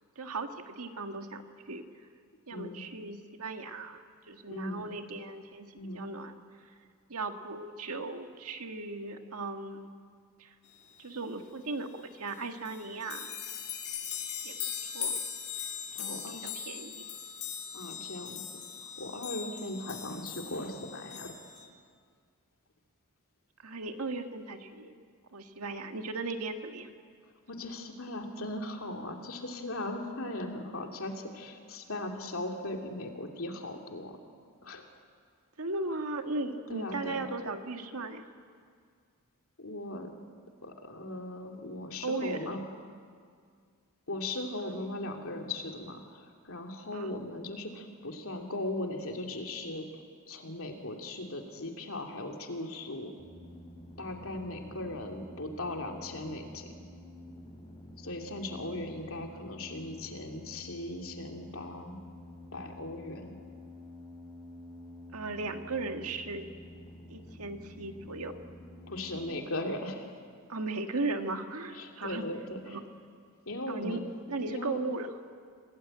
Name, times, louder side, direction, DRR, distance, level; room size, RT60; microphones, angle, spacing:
voice 1, 0.1-1.8 2.5-6.3 7.1-9.9 10.4-10.5 11.0-13.3 14.4-14.6 14.8-15.1 16.0-17.1 23.6-24.9 25.3-26.9 35.6-38.3 42.0-42.4 46.9-47.1 65.1-66.5 67.1-68.3 70.5-72.2 72.7-72.8 73.7-74.0 74.3-75.1, right 3 dB, 80° right, 6 dB, 1.7 m, -37 dB
voice 2, 4.5-5.0 5.8-6.1 15.9-16.6 17.7-18.4 18.7-21.3 27.5-34.2 34.6-34.9 36.7-37.3 39.6-40.1 40.6-42.6 44.1-49.9 50.3-53.1 54.0-56.8 58.0-62.0 62.5-63.4 68.9-70.2 71.7-72.8 73.5-74.0 74.5-74.8, left 1 dB, 65° left, 3 dB, 2.7 m, -38 dB
sound 1, 12.3-12.4 12.7-21.7, left 8 dB, 50° left, 2.9 m, -39 dB
sound 2, 53.2-69.3, left 1 dB, 20° left, 4.2 m, -49 dB
27.0 x 18.0 x 9.0 m, 2.1 s
head